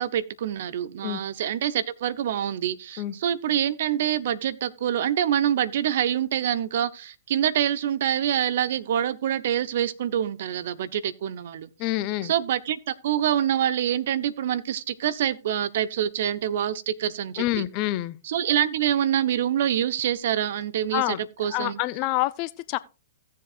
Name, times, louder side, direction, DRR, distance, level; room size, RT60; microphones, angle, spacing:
voice 1, 0.0-11.7 12.2-17.4 18.2-21.0 21.4-21.8, right 10 dB, 60° right, 0.8 m, -26 dB
voice 2, 11.8-12.3 17.4-18.2 20.9-21.2 21.5-22.8, left 16 dB, 40° left, 0.7 m, -27 dB
16.5 x 7.4 x 2.5 m
hypercardioid pair, 115°, 0 cm